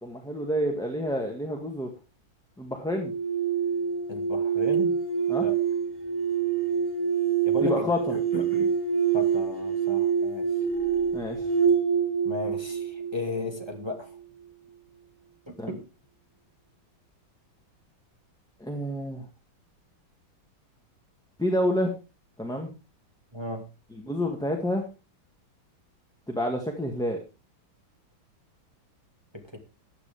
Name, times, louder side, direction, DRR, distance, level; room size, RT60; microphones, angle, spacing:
voice 1, 0.0-1.9 2.6-3.1 5.3-5.5 7.6-8.2 11.1-11.5 15.6-15.7 18.6-19.3 21.4-21.9 22.4-22.7 24.0-24.9 26.3-27.2, equal, ahead, 2 dB, 1.7 m, -28 dB
sound 1, 2.9-13.9, right 7 dB, 20° left, 2.8 m, -26 dB
voice 2, 4.1-5.0 5.4-5.6 7.5-8.7 9.1-10.5 12.2-14.2 15.5-15.8 23.3-23.7 29.3-29.6, left 2 dB, 15° right, 2 dB, 1.9 m, -35 dB
14.5 x 10.0 x 3.5 m, 0.29 s
omnidirectional pair, 2.2 m